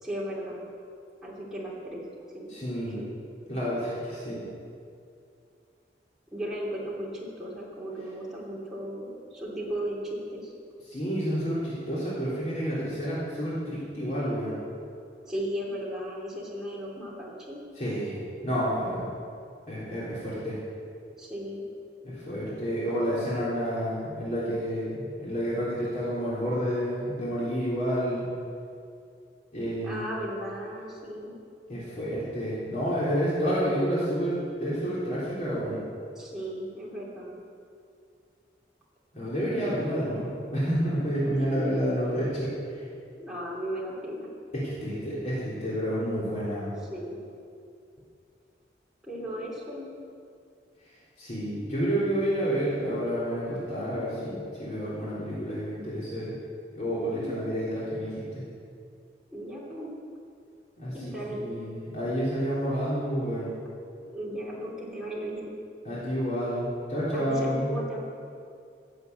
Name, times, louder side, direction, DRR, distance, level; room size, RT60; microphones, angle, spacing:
voice 1, 0.0-0.7 1.2-2.0 2.3-2.5 2.9-3.1 6.3-10.5 15.2-17.6 21.2-21.6 29.8-31.3 36.2-37.4 41.3-41.7 43.2-44.3 46.9-47.2 49.0-49.9 57.1-57.3 59.3-59.9 60.9-61.6 64.0-65.5 67.1-68.0, equal, 5° right, -6 dB, 2.9 m, -36 dB
voice 2, 2.5-3.0 3.5-4.4 10.9-14.6 17.8-18.2 18.4-19.1 19.7-20.6 22.0-28.3 29.5-30.0 31.7-35.8 39.1-42.5 44.5-46.7 51.2-56.4 56.7-58.1 60.8-63.5 65.9-67.7, equal, 40° left, -9 dB, 3.5 m, -29 dB
16.0 x 7.9 x 8.1 m, 2.4 s
head